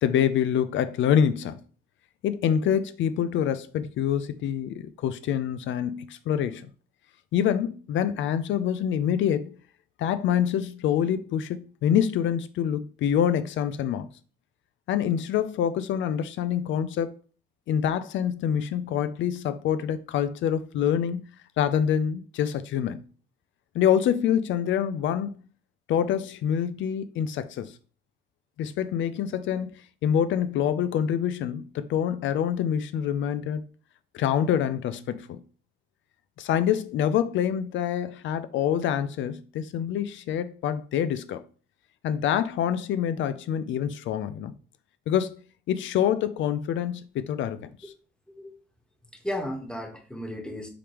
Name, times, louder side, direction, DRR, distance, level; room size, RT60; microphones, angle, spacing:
voice 1, 0.0-1.6 2.2-6.7 7.3-9.6 10.0-14.1 14.9-17.2 17.7-21.2 21.6-23.0 23.7-25.4 25.9-27.7 28.6-33.6 34.1-35.4 36.4-41.4 42.0-44.5 45.1-45.4 45.7-47.9, left 9 dB, 75° left, 0.4 m, -26 dB
voice 2, 49.1-50.7, left 1 dB, 5° left, 1.3 m, -34 dB
4.9 x 3.5 x 2.9 m
cardioid pair, 90°, 20 cm